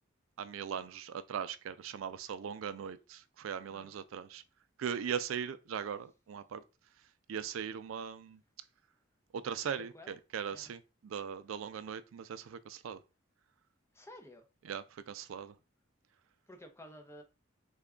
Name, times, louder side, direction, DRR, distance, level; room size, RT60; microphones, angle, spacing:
voice 1, 0.4-4.4 4.8-6.6 7.3-8.4 9.3-13.0 14.6-15.5, right 7 dB, 90° right, 0.4 m, -39 dB
voice 2, 13.9-14.4 16.5-17.2, left 1 dB, 15° left, 0.5 m, -52 dB
3.4 x 2.2 x 3.6 m
head